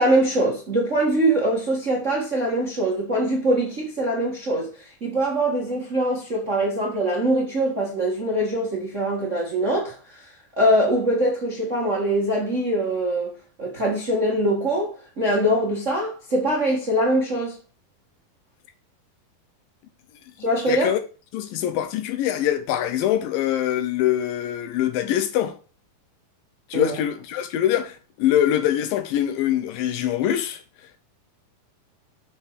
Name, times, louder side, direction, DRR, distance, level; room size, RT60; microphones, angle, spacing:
voice 1, 0.0-4.7 5.0-9.9 10.6-13.3 13.6-17.6 20.4-20.9 26.7-26.9, right 1 dB, 60° right, 0.7 m, -23 dB
voice 2, 20.7-21.0 21.3-25.5 26.7-30.6, left 11 dB, 80° left, 2.3 m, -23 dB
6.4 x 5.8 x 4.7 m
omnidirectional pair, 4.4 m